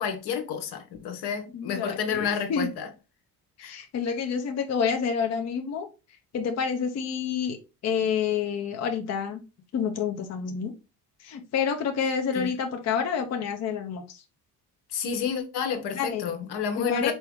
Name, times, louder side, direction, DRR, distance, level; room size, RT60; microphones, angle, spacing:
voice 1, 0.0-2.9 3.6-3.8 12.3-12.5 14.9-17.1, left 7 dB, 75° left, 1.1 m, -30 dB
voice 2, 1.5-2.7 3.6-5.9 6.3-7.6 7.8-9.4 9.7-10.7 11.2-14.2 15.9-16.3 16.8-17.1, left 6 dB, 40° left, 0.7 m, -28 dB
4.5 x 2.8 x 3.5 m
cardioid pair, 145°, 40 cm